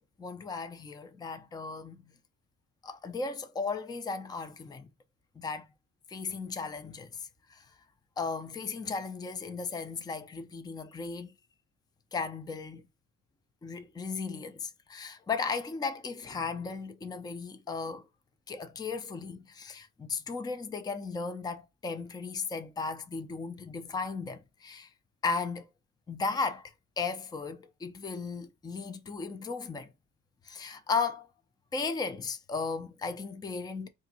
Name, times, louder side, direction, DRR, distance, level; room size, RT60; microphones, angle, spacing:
voice 1, 0.2-2.1 2.8-4.9 5.4-5.7 6.1-7.7 8.2-11.3 12.1-12.9 13.6-18.0 18.5-24.9 25.2-25.7 26.1-29.9 30.4-31.3 31.7-33.9, left 4 dB, 15° left, 0.3 m, -36 dB
3.6 x 2.6 x 4.0 m
wide cardioid pair, 135°, 32 cm